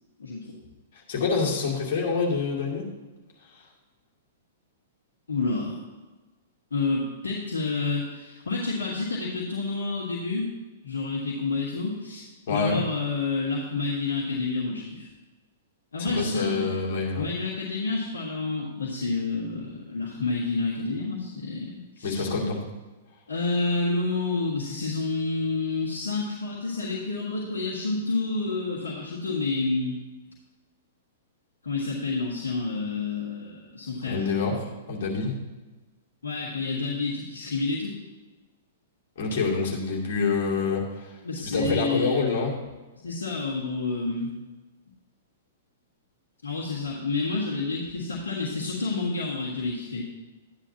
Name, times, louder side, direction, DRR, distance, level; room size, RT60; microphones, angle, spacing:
voice 1, 0.2-0.5 5.3-5.8 6.7-10.5 10.8-15.1 15.9-16.7 17.2-22.3 23.3-30.0 31.6-34.3 36.2-37.9 41.2-42.2 43.0-44.3 46.4-50.0, left 3 dB, 65° left, -5 dB, 1.6 m, -29 dB
voice 2, 1.1-2.8 3.5-3.6 12.5-12.8 16.0-17.3 22.0-22.6 34.0-35.4 39.2-41.1 41.4-42.5, left 4 dB, 50° left, -3 dB, 2.7 m, -26 dB
12.0 x 9.9 x 2.9 m, 1.2 s
figure-of-eight pair, 105°, 0 cm